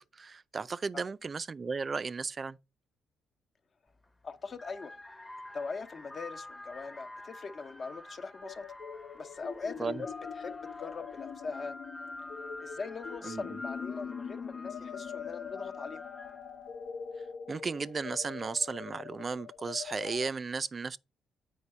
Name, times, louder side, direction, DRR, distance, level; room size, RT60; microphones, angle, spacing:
voice 1, 0.0-2.6 9.8-10.0 13.2-13.6 17.5-21.0, right 4 dB, 35° right, 0.4 m, -35 dB
sound 1, 3.9-4.1 4.5-16.6, left 2 dB, 10° left, 0.9 m, -48 dB
voice 2, 4.2-5.0 5.5-8.7 9.1-10.1 10.4-11.8 12.6-16.0, left 4 dB, 45° left, 0.9 m, -41 dB
sound 2, 8.4-20.3, left 7 dB, 70° left, 1.0 m, -43 dB
8.2 x 4.8 x 4.3 m
cardioid pair, 90°, 0 cm